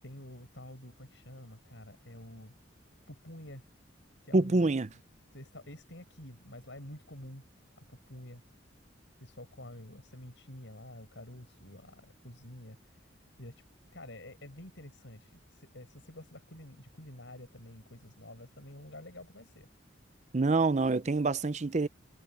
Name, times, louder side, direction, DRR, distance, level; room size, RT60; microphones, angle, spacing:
voice 1, 0.0-2.5 3.1-3.6 4.2-4.7 5.3-7.4 7.9-8.4 9.2-13.0 13.4-13.6 13.9-19.7, left 1 dB, 70° left, 6.2 m, -49 dB
voice 2, 4.3-4.9 20.3-21.9, right 3 dB, 35° right, 0.5 m, -26 dB
head